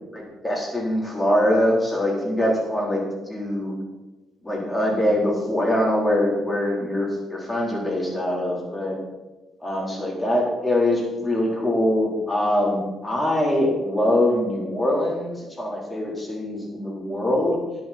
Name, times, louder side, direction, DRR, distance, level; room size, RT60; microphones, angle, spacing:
voice 1, 0.1-3.7 4.4-9.0 9.6-17.6, left 1 dB, 15° left, -3 dB, 4.0 m, -23 dB
11.0 x 10.5 x 4.4 m, 1.1 s
cardioid pair, 90°, 0 cm